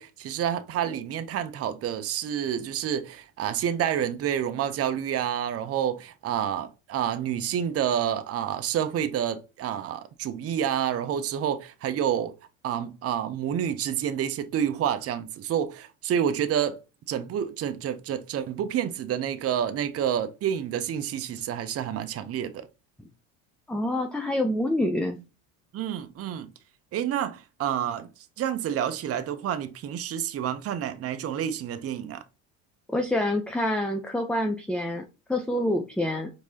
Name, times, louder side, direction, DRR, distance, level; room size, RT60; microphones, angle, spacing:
voice 1, 0.0-12.3 12.6-16.8 17.1-22.7 25.7-26.5 26.9-28.1 28.4-32.2, right 9 dB, 35° right, 0.7 m, -29 dB
voice 2, 23.7-25.2 32.9-36.3, left 1 dB, ahead, 0.5 m, -27 dB
4.6 x 3.7 x 2.8 m
hypercardioid pair, 80°, 42 cm